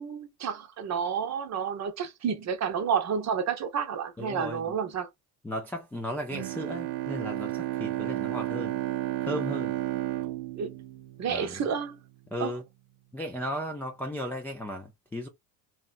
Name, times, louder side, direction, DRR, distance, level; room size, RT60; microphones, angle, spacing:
voice 1, 0.0-5.1 10.6-10.7 11.2-12.0 12.4-12.5, right 7 dB, 35° right, 0.8 m, -30 dB
voice 2, 4.2-4.7 5.4-8.8 9.2-9.8 11.3-11.7 12.3-12.6 13.1-15.3, left 1 dB, 5° left, 0.3 m, -35 dB
Bowed string instrument, 6.3-11.8, right 15 dB, 75° right, 0.6 m, -32 dB
2.8 x 2.1 x 2.5 m
hypercardioid pair, 70°, 50 cm